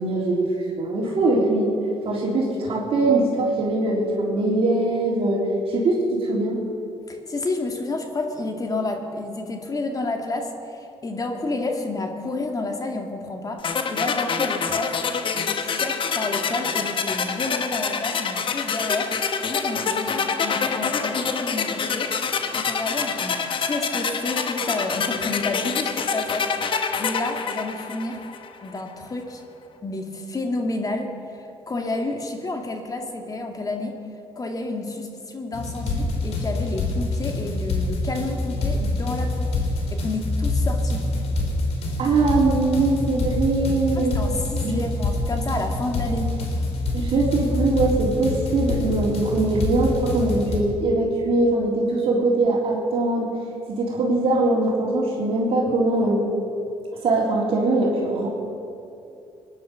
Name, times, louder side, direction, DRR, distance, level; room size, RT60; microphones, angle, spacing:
voice 1, 0.0-1.7 2.0-6.6 42.0-44.2 44.6-44.8 46.9-53.3 53.8-56.2 57.0-58.3, right 2 dB, 60° right, -3 dB, 3.4 m, -22 dB
voice 2, 7.1-15.0 15.3-22.2 22.5-28.2 28.6-29.4 29.8-34.0 34.4-39.5 39.9-41.0 44.0-46.3, left 2 dB, 35° left, 3 dB, 2.0 m, -30 dB
sound 1, 13.6-28.6, left 6 dB, 50° left, 1.3 m, -26 dB
sound 2, 35.5-50.6, left 2 dB, 65° left, 3.2 m, -26 dB
19.5 x 10.5 x 6.9 m, 2.7 s
supercardioid pair, 80°, 11 cm